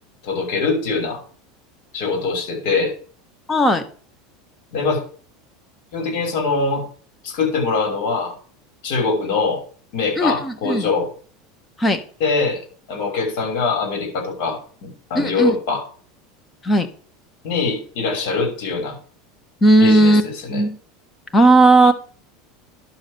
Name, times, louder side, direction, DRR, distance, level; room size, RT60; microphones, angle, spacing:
voice 1, 0.2-1.2 1.9-2.9 4.7-5.0 5.9-6.8 7.2-8.3 8.8-9.6 9.9-11.1 12.2-12.6 12.9-15.8 17.4-19.0 19.8-20.6, left 4 dB, 65° left, 3 dB, 6.0 m, -23 dB
voice 2, 3.5-3.8 10.2-10.9 11.8-12.0 15.1-15.6 16.6-16.9 19.6-20.2 20.5-20.8 21.3-21.9, right 2 dB, 15° left, 8 dB, 1.5 m, -15 dB
11.0 x 4.9 x 7.1 m, 0.44 s
supercardioid pair, 130°, 0 cm